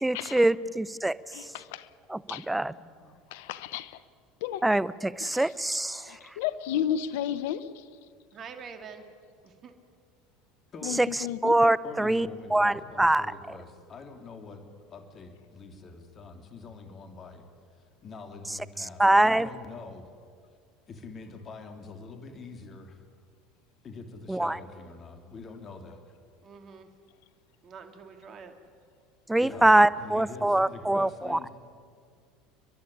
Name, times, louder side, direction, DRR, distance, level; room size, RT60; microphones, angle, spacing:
voice 1, 0.0-1.5 2.1-2.7 4.6-6.2 11.0-11.1 11.4-13.6 18.8-19.5 24.3-24.6 29.3-31.4, right 1 dB, 10° right, 18 dB, 0.7 m, -24 dB
voice 2, 1.3-1.9 2.3-2.5 3.3-4.0 4.4-4.6 5.2-5.3 6.0-7.8 10.8-11.5, left 10 dB, 75° left, 16 dB, 0.9 m, -33 dB
voice 3, 2.5-3.2 10.7-11.0 11.8-14.6 14.9-17.5 18.0-20.1 20.9-23.0 23.8-26.1 29.4-31.5, left 4 dB, 40° left, 6 dB, 3.1 m, -45 dB
voice 4, 8.3-9.1 9.4-9.7 26.4-26.9 27.6-28.5, right 6 dB, 40° right, 6 dB, 2.7 m, -45 dB
30.0 x 11.5 x 10.0 m, 2.1 s
hypercardioid pair, 85°, 0 cm